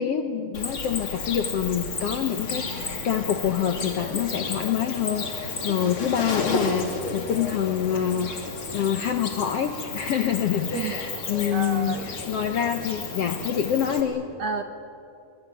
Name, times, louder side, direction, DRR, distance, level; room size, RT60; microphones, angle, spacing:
voice 1, 0.0-8.3 8.7-14.2, left 9 dB, 65° left, 7 dB, 1.6 m, -26 dB
Cricket, 0.5-14.0, left 3 dB, 40° left, 3.2 m, -32 dB
voice 2, 11.5-12.1 14.4-14.6, right 6 dB, 65° right, 8 dB, 1.7 m, -30 dB
25.0 x 24.0 x 9.4 m, 2.7 s
omnidirectional pair, 4.0 m